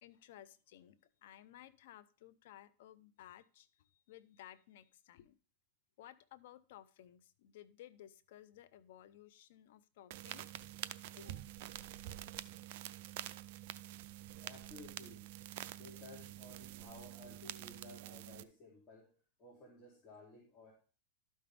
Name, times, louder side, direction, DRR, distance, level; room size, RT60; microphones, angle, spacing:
voice 1, 0.0-5.4 6.0-10.7, left 12 dB, 65° left, 14 dB, 0.7 m, -57 dB
sound 1, 10.1-18.4, right 14 dB, 60° right, 0.4 m, -47 dB
voice 2, 14.3-15.3 15.8-19.1 19.4-20.7, left 3 dB, 25° left, -4 dB, 2.9 m, -56 dB
12.0 x 5.5 x 3.4 m, 0.39 s
supercardioid pair, 140°, 0 cm